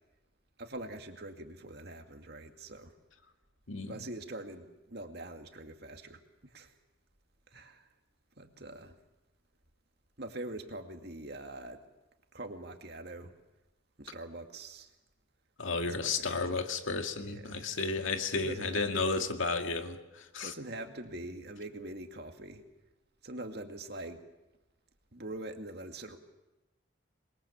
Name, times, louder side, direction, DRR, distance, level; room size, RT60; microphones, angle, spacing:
voice 1, 0.6-2.9 3.9-6.7 7.5-7.9 8.4-8.9 10.2-11.8 12.3-13.3 14.0-14.9 15.8-16.6 17.2-17.6 18.3-19.0 20.4-22.6 23.2-24.2 25.1-26.2, right 1 dB, 55° right, 2.3 m, -44 dB
voice 2, 15.6-20.5, left 3 dB, 80° left, 2.1 m, -33 dB
27.5 x 22.0 x 7.2 m
head